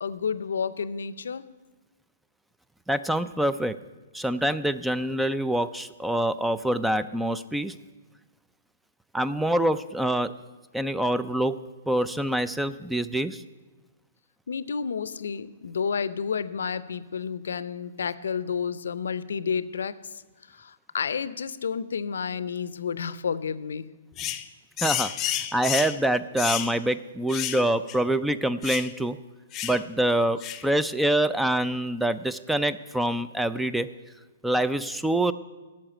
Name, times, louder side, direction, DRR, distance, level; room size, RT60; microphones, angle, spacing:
voice 1, 0.0-1.5 14.5-20.2 20.5-23.9, left 6 dB, 75° left, 16 dB, 0.5 m, -30 dB
voice 2, 2.9-3.8 4.1-7.7 9.1-10.3 10.7-13.4 24.8-29.2 29.6-33.9 34.4-35.3, right 1 dB, 5° right, 14 dB, 0.3 m, -26 dB
sound 1, 24.2-24.4 24.8-26.0 26.4-26.7 27.3-27.6 27.9-28.0 28.6-28.9 29.5-29.8 30.4-30.7, left 11 dB, 25° left, 0.7 m, -30 dB
8.7 x 7.1 x 8.8 m, 1.2 s
hypercardioid pair, 130°, 0 cm